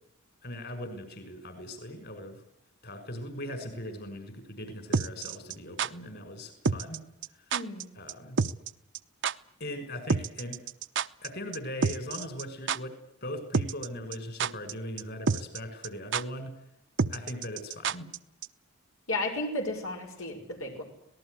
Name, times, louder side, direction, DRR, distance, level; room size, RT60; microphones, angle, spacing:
voice 1, 0.4-2.4 2.8-7.0 8.0-8.4 9.6-10.6 11.2-16.5 17.1-18.1, left 1 dB, 50° left, 9 dB, 6.1 m, -39 dB
sound 1, 4.9-5.9 6.7-7.0 7.2-7.3 7.5-8.1 8.4-8.7 8.9-9.0 9.2-9.3 10.1-11.3 11.5-11.6 11.8-12.4 12.7-12.8 13.5-13.9 14.1-14.7 15.0-15.1 15.3-15.6 15.8-15.9 16.1-16.2 17.0-18.2 18.4-18.5, right 5 dB, 60° right, 0.9 m, -28 dB
voice 2, 7.5-7.9 19.1-20.8, left 1 dB, 85° left, 3 dB, 6.0 m, -33 dB
26.0 x 19.0 x 8.1 m, 0.79 s
head